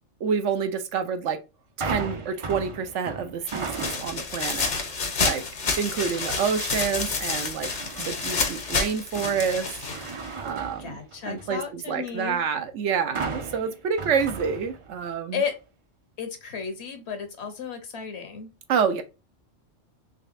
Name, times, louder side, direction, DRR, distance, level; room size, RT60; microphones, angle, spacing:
voice 1, 0.2-1.4 1.8-5.5 5.8-7.7 8.0-11.0 11.3-15.4 18.7-19.0, right 6 dB, 75° right, 1.0 m, -28 dB
sound 1, 1.8-4.3 4.8-5.2 7.6-8.3 8.8-11.6 13.2-15.1 15.4-15.5, right 4 dB, 40° right, 0.5 m, -36 dB
sound 2, 3.5-10.5, left 4 dB, 45° left, 0.8 m, -29 dB
voice 2, 10.8-12.4 15.3-15.6 16.2-18.5, left 6 dB, 65° left, 1.2 m, -33 dB
4.0 x 3.2 x 2.5 m
omnidirectional pair, 1.2 m